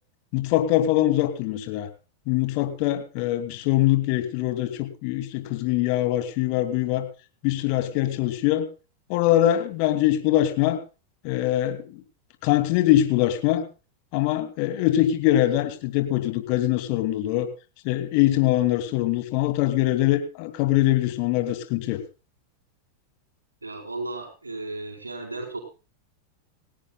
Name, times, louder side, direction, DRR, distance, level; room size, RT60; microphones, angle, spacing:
voice 1, 0.3-1.9 2.3-7.1 7.4-8.7 9.1-10.8 11.2-12.0 12.4-13.7 14.1-17.5 17.8-22.0, left 14 dB, 45° left, 9 dB, 2.6 m, -23 dB
voice 2, 23.6-25.6, right 2 dB, 80° right, 3 dB, 4.4 m, -34 dB
19.0 x 17.0 x 2.3 m, 0.33 s
figure-of-eight pair, 90°, 0 cm